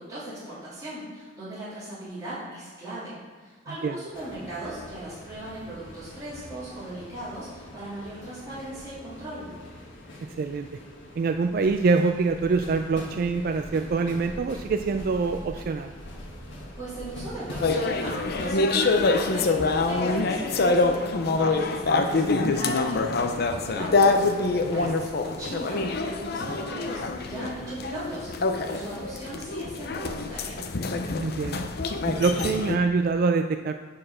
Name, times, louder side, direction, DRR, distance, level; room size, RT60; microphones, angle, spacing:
voice 1, 0.0-9.5 16.8-28.3 28.6-30.6, right 1 dB, 20° right, -11 dB, 2.8 m, -38 dB
sound 1, 4.1-18.6, equal, 75° left, 1.4 m, -43 dB
voice 2, 11.2-15.9 24.8-25.0 31.2-31.7 32.1-33.8, right 4 dB, 50° right, 7 dB, 0.3 m, -25 dB
sound 2, 17.6-32.8, left 3 dB, 55° left, 0.6 m, -25 dB
8.6 x 4.8 x 6.1 m, 1.4 s
head